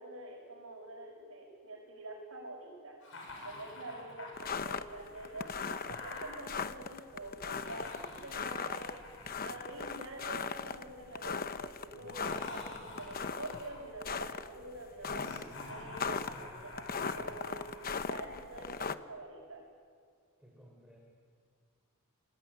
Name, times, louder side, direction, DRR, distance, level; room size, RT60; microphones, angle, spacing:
voice 1, 0.0-3.0 3.4-9.0 9.4-17.6 18.1-19.6, right 2 dB, 65° right, -3 dB, 6.6 m, -46 dB
Laughter, 3.0-6.4 7.4-10.7 11.9-13.9 15.0-18.0, left 2 dB, 65° left, 7.7 m, -48 dB
sound 1, 4.4-18.9, left 5 dB, 40° left, 0.9 m, -39 dB
voice 2, 9.2-9.6 20.4-21.0, equal, 5° right, 0 dB, 3.8 m, -60 dB
27.0 x 21.0 x 9.9 m, 2.2 s
head